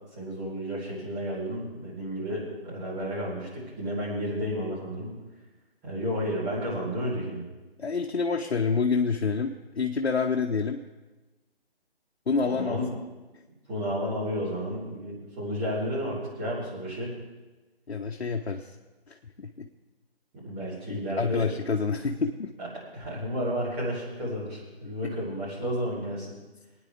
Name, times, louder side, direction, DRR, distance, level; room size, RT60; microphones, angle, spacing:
voice 1, 0.1-5.1 5.8-7.4 12.4-12.9 13.7-17.1 20.4-21.4 22.6-22.7 22.9-26.3, equal, 20° right, -6 dB, 4.8 m, -32 dB
voice 2, 7.8-10.8 12.3-12.8 17.9-18.7 19.1-19.7 20.9-22.5, left 5 dB, 75° left, 2 dB, 1.1 m, -28 dB
23.5 x 9.7 x 3.6 m, 1.2 s
figure-of-eight pair, 150°, 32 cm